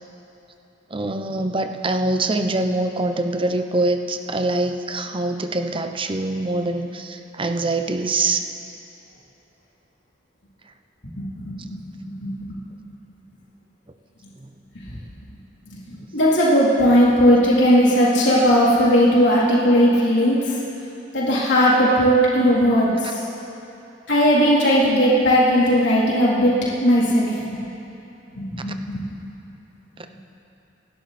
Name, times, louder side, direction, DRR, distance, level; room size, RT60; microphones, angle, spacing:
voice 1, 0.9-8.4 28.7-28.8 30.0-30.1, right 2 dB, 30° right, 7 dB, 0.8 m, -24 dB
voice 2, 11.2-12.6 15.7-20.6 21.1-23.2 24.1-26.5 26.8-27.3 28.3-29.0, equal, 70° left, -7 dB, 3.8 m, -18 dB
26.0 x 12.0 x 4.4 m, 2.9 s
head